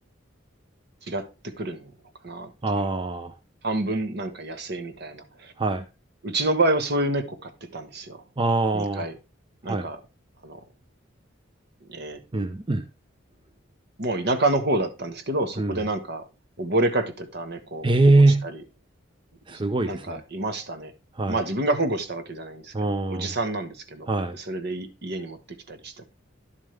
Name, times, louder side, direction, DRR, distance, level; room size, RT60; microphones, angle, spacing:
voice 1, 1.1-1.9 2.2-2.5 3.6-5.5 6.2-8.2 8.7-9.1 9.6-10.0 10.4-10.6 11.9-12.2 14.0-16.2 16.6-18.6 19.5-20.9 21.2-24.1 24.3-26.0, right 2 dB, 55° right, 9 dB, 1.4 m, -28 dB
voice 2, 2.6-3.3 5.6-5.8 8.4-9.1 9.7-9.9 12.3-12.8 15.6-15.8 17.8-18.5 19.5-20.2 21.2-21.4 22.7-23.3 24.1-24.4, right 2 dB, 25° right, 9 dB, 0.6 m, -22 dB
11.0 x 7.2 x 3.3 m, 0.28 s
head